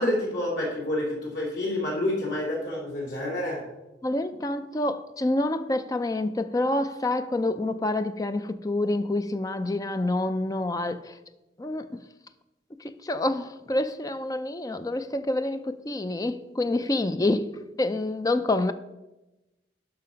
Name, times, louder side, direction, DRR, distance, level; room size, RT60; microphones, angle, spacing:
voice 1, 0.0-3.6, left 1 dB, 85° left, 3.2 m, -28 dB
voice 2, 4.0-11.2 11.6-12.0 12.8-18.7, left 2 dB, 20° left, 0.4 m, -27 dB
11.5 x 5.7 x 5.1 m
head